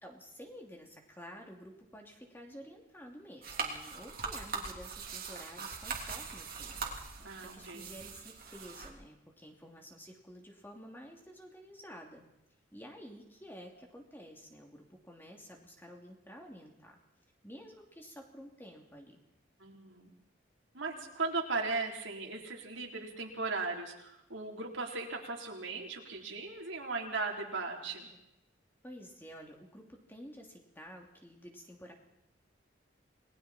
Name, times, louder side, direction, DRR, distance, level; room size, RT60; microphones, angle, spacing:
voice 1, 0.0-12.3 12.7-17.0 17.4-19.2 28.8-31.9, equal, 10° left, 1 dB, 2.9 m, -51 dB
sound 1, 3.4-8.9, right 4 dB, 50° right, 3.2 m, -41 dB
voice 2, 7.2-7.9 19.6-20.1 20.7-28.1, right 3 dB, 80° right, 0 dB, 3.9 m, -37 dB
29.0 x 20.5 x 4.4 m, 0.84 s
head